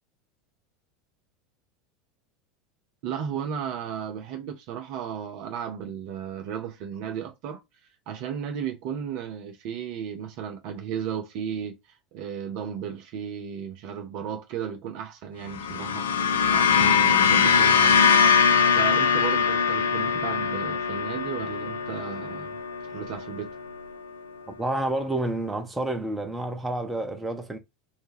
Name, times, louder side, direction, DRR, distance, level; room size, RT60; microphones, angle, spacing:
voice 1, 3.0-7.6 8.1-11.8 12.1-16.1 16.4-18.4 18.6-22.6 22.8-23.5, right 8 dB, 55° right, 0.5 m, -34 dB
sound 1, 15.5-23.9, left 6 dB, 75° left, 0.3 m, -22 dB
voice 2, 24.6-27.6, right 1 dB, 15° right, 0.8 m, -29 dB
2.7 x 2.2 x 3.1 m
figure-of-eight pair, 80°, 0 cm